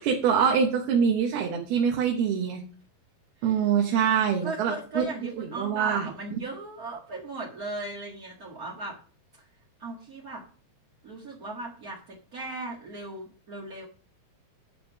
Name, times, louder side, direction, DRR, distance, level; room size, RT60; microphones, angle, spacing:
voice 1, 0.0-2.6 3.4-6.1, right 7 dB, 85° right, 1 dB, 3.2 m, -25 dB
voice 2, 4.4-9.0 9.8-10.4 11.0-13.8, right 2 dB, 40° right, -3 dB, 1.2 m, -37 dB
11.5 x 6.2 x 5.2 m, 0.41 s
omnidirectional pair, 4.3 m